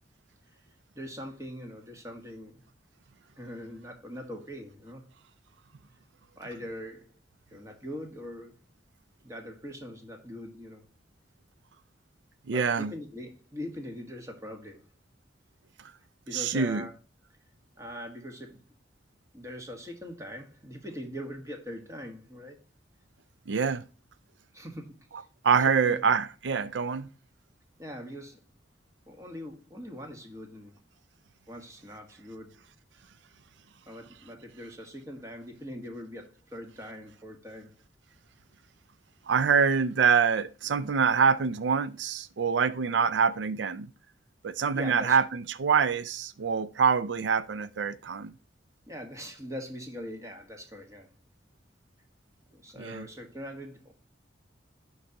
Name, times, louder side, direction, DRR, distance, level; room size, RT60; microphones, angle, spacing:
voice 1, 0.9-2.7 3.4-5.1 6.4-7.1 7.5-8.6 9.2-10.9 12.5-14.9 16.3-16.9 17.8-18.6 19.3-22.6 24.5-25.3 25.7-26.0 27.8-28.4 29.1-30.8 31.5-32.6 33.9-37.7 44.7-45.2 48.9-51.1 52.5-53.9, equal, 15° right, 1.5 m, -42 dB
voice 2, 12.5-12.9 16.3-16.8 23.5-23.8 25.4-27.1 39.3-43.9 44.4-48.3 52.8-53.0, right 6 dB, 90° right, 0.5 m, -25 dB
11.5 x 4.0 x 2.8 m
head